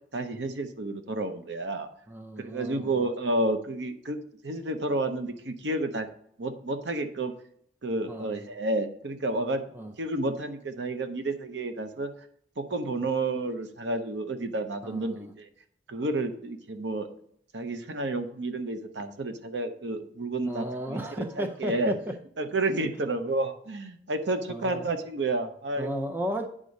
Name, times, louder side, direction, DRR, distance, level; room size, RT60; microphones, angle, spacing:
voice 1, 0.1-1.9 2.4-4.2 4.4-6.1 6.4-7.3 7.8-9.6 10.0-12.1 12.6-15.5 15.9-17.1 17.5-21.9 22.4-26.0, right 2 dB, 90° right, 8 dB, 0.8 m, -30 dB
voice 2, 2.1-3.1 8.1-8.3 9.7-9.9 14.8-15.3 20.5-22.0 24.5-24.9 25.8-26.5, equal, 10° right, 5 dB, 0.6 m, -34 dB
9.5 x 3.7 x 5.3 m, 0.66 s
head